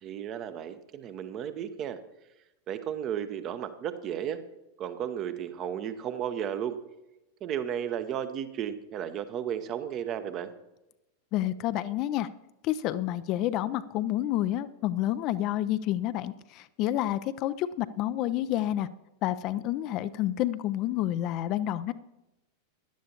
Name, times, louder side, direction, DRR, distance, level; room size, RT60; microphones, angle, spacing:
voice 1, 0.0-2.0 2.7-4.4 4.8-6.8 7.4-10.5, right 9 dB, 35° right, 11 dB, 0.8 m, -34 dB
voice 2, 11.3-12.3 12.6-18.9 19.2-21.9, left 13 dB, 40° left, 13 dB, 0.4 m, -29 dB
16.5 x 11.0 x 2.9 m, 0.96 s
figure-of-eight pair, 90°, 0 cm